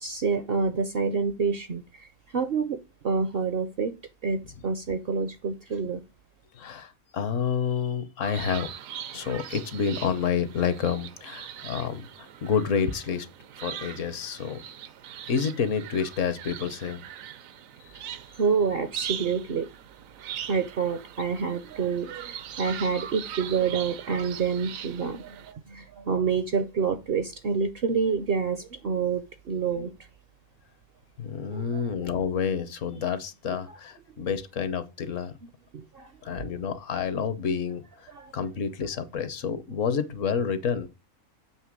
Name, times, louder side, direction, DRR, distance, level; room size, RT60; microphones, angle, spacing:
voice 1, 0.0-2.1 2.3-2.8 3.0-3.9 4.2-6.0 18.4-19.7 20.5-29.9 31.5-31.9 33.5-33.8 35.7-36.4 38.1-38.3, right 5 dB, 60° right, 0.6 m, -28 dB
voice 2, 6.5-8.7 9.1-13.3 13.6-14.6 15.3-17.0 31.2-35.3 36.2-37.8 38.3-40.9, left 6 dB, 65° left, 1.1 m, -29 dB
sound 1, 8.2-25.5, right 10 dB, 80° right, 1.1 m, -41 dB
7.4 x 3.2 x 6.0 m
omnidirectional pair, 1.4 m